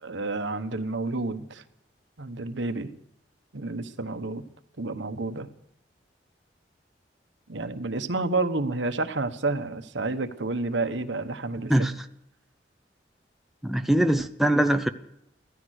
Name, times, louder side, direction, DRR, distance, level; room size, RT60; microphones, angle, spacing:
voice 1, 0.0-1.6 2.2-2.9 3.5-4.4 4.8-5.5 7.5-11.9, right 3 dB, 85° right, 9 dB, 1.2 m, -30 dB
voice 2, 13.6-14.9, right 1 dB, ahead, 6 dB, 0.7 m, -22 dB
15.0 x 14.5 x 6.5 m, 0.79 s
head